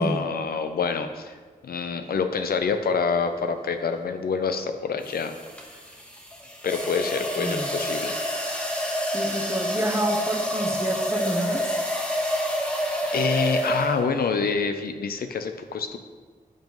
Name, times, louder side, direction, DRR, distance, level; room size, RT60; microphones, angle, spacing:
voice 1, 0.0-1.4 1.6-5.3 6.6-8.1 13.1-16.0, left 5 dB, 80° left, 7 dB, 0.5 m, -26 dB
sound 1, 3.1-3.4 5.0-14.2, equal, 10° left, 0.9 m, -28 dB
voice 2, 7.4-7.7 9.1-11.8, right 1 dB, 15° right, 4 dB, 0.5 m, -28 dB
7.5 x 3.0 x 5.3 m, 1.5 s
wide cardioid pair, 115°, 15 cm